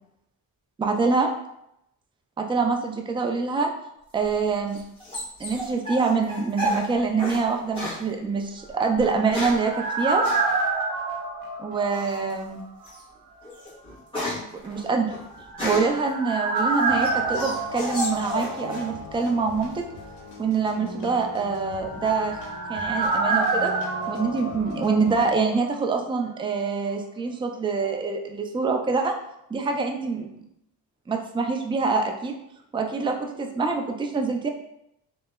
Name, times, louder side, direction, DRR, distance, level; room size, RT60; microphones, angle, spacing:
voice 1, 0.8-1.3 2.4-3.7 4.1-4.8 5.4-10.2 11.6-12.6 14.6-15.1 15.6-19.8 20.4-22.4 22.7-23.7 24.1-29.1 29.5-30.3 31.1-32.4 32.7-34.5, right 4 dB, 15° right, 3 dB, 0.3 m, -25 dB
sound 1, 4.1-7.4 7.7-8.0 9.0-9.7 10.2-10.4 11.9-12.3 12.8-13.0 13.4-16.0 16.6-18.9 19.2-19.8, left 1 dB, 15° left, 1.4 m, -32 dB
sound 2, 8.7-12.6 12.8-12.9 15.3-19.1 19.3-19.4 21.7-25.5 25.8-25.9, right 3 dB, 65° right, 0.8 m, -28 dB
sound 3, 16.9-25.4, left 3 dB, 80° left, 0.6 m, -40 dB
3.3 x 2.0 x 2.2 m, 0.79 s
cardioid pair, 70°, 40 cm